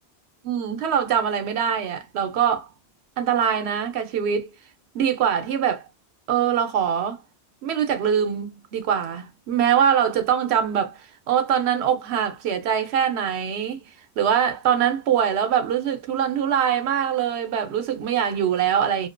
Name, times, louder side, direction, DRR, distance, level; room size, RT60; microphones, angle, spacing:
voice 1, 0.4-2.7 3.2-4.5 4.9-5.8 6.3-7.2 7.6-11.0 11.3-13.8 14.2-19.1, right 8 dB, 85° right, 0.9 m, -23 dB
2.4 x 2.1 x 2.5 m
omnidirectional pair, 1.1 m